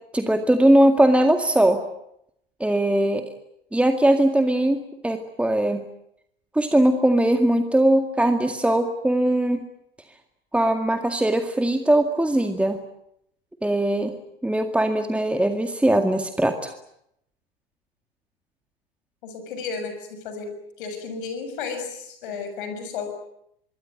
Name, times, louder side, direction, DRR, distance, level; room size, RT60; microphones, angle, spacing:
voice 1, 0.1-1.8 2.6-3.2 3.7-5.8 6.5-9.6 10.5-12.8 13.6-14.1 14.4-16.7, right 1 dB, 5° right, 6 dB, 2.0 m, -20 dB
voice 2, 19.2-20.5 20.8-23.1, left 5 dB, 60° left, 8 dB, 6.7 m, -33 dB
25.0 x 23.5 x 9.4 m, 0.77 s
figure-of-eight pair, 80°, 29 cm